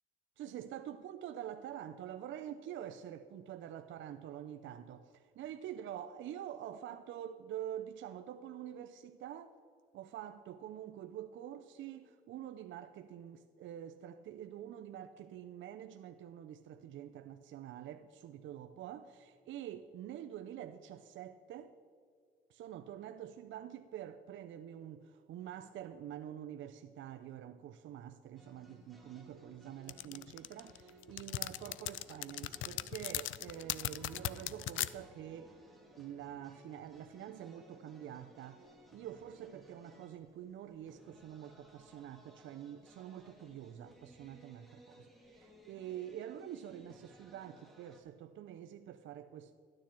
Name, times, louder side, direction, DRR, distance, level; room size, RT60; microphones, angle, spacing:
voice 1, 0.4-5.0 5.4-9.5 9.9-21.7 22.5-35.6 36.0-49.5, right 10 dB, 75° right, 0.5 m, -46 dB
sound 1, 28.4-48.0, equal, ahead, 2.2 m, -60 dB
sound 2, 29.9-34.9, left 14 dB, 75° left, 0.5 m, -38 dB
13.0 x 9.6 x 4.4 m
cardioid pair, 90°, 20 cm